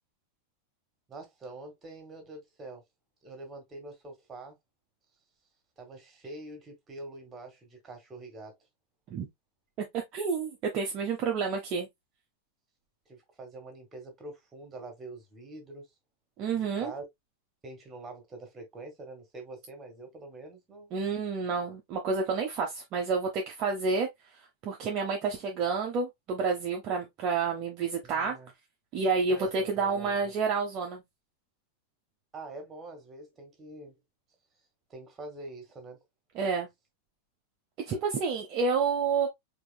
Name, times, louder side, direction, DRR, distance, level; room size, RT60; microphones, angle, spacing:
voice 1, 1.1-2.8 3.2-4.6 5.8-8.6 13.1-15.9 16.5-17.0 17.6-20.9 28.0-28.5 29.3-30.4 32.3-34.0 34.9-36.0, right 2 dB, 20° right, 1.8 m, -45 dB
voice 2, 9.9-11.9 16.4-16.9 20.9-24.1 24.6-28.4 28.9-31.0 36.3-36.7 37.9-39.3, right 5 dB, 35° right, 0.8 m, -29 dB
4.6 x 3.0 x 2.3 m
figure-of-eight pair, 90°, 0 cm